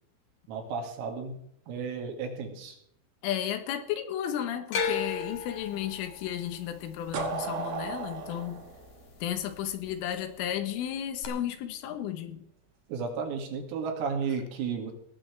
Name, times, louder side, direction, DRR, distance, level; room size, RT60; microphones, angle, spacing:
voice 1, 0.5-1.4 1.7-2.8 12.9-14.9, right 5 dB, 85° right, 2 dB, 5.1 m, -33 dB
voice 2, 3.2-8.6 9.2-12.5, left 10 dB, 75° left, 8 dB, 3.8 m, -33 dB
sound 1, 4.7-8.9 9.2-9.9 11.2-11.3, left 6 dB, 60° left, 2.1 m, -35 dB
sound 2, 7.1-10.0, right 4 dB, 55° right, 3.4 m, -35 dB
18.5 x 14.5 x 3.5 m, 0.71 s
omnidirectional pair, 5.9 m